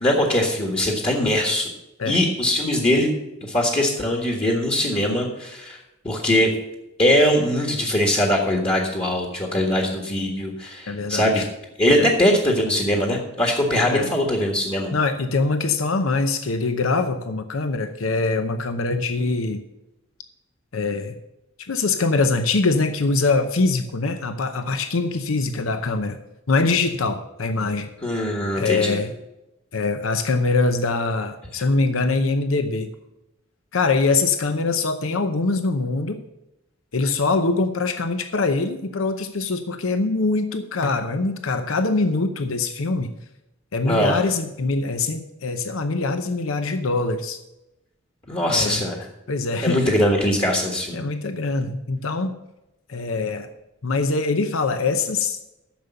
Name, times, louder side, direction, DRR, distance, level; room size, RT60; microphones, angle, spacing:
voice 1, 0.0-1.7 2.1-3.1 3.4-5.8 6.0-6.5 7.0-11.4 11.8-14.9 28.0-29.0 43.9-44.2 48.3-49.0 49.6-51.0, left 1 dB, 30° left, 1 dB, 1.6 m, -21 dB
voice 2, 10.9-11.5 11.9-12.1 13.9-14.1 14.9-19.6 20.7-21.1 21.7-26.2 26.5-27.9 28.6-29.1 29.7-32.9 33.7-36.2 36.9-43.1 43.7-47.4 48.5-48.8 49.3-49.9 50.9-52.3 52.9-53.5 53.8-55.4, left 3 dB, 80° left, 8 dB, 0.8 m, -23 dB
10.5 x 6.9 x 6.9 m, 0.93 s
head